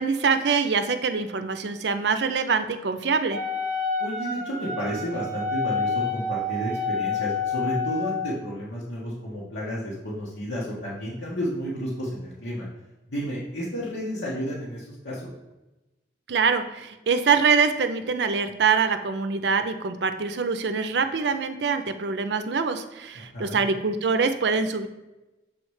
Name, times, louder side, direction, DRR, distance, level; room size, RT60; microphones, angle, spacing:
voice 1, 0.0-3.4 16.3-24.9, right 5 dB, 70° right, 9 dB, 0.5 m, -24 dB
Wind instrument woodwind instrument, 3.3-8.3, left 3 dB, 40° right, 0.9 m, -28 dB
voice 2, 4.0-12.7 13.1-15.3 23.1-23.6, equal, 80° left, -6 dB, 1.3 m, -32 dB
7.0 x 3.2 x 4.8 m, 1.0 s
head